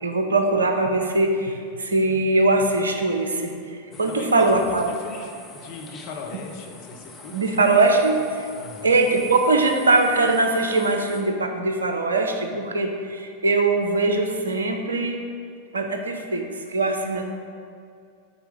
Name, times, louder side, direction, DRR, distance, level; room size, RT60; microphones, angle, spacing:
voice 1, 0.0-4.9 7.3-8.5 8.8-15.3 15.7-17.2, right 2 dB, 70° right, 5 dB, 0.7 m, -21 dB
sound 1, 3.9-11.2, left 3 dB, 20° left, 1.0 m, -44 dB
voice 2, 4.1-7.6 8.5-8.9, left 4 dB, 45° left, 2 dB, 0.9 m, -39 dB
8.0 x 4.7 x 5.2 m, 2.3 s
figure-of-eight pair, 90°, 0 cm